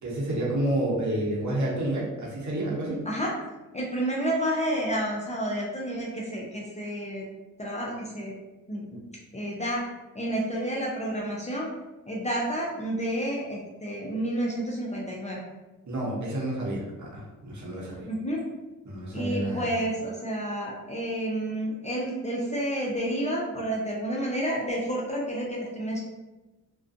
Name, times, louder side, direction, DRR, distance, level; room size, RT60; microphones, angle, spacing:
voice 1, 0.0-3.0 15.9-18.1 18.8-19.7, right 1 dB, 50° right, -3 dB, 0.9 m, -29 dB
voice 2, 3.7-7.3 7.6-8.3 8.7-9.0 9.3-9.9 10.1-11.7 12.1-15.4 18.1-18.5 19.1-26.0, right 1 dB, 20° left, -3 dB, 0.5 m, -30 dB
2.4 x 2.2 x 2.5 m, 1.1 s
cardioid pair, 65°, 37 cm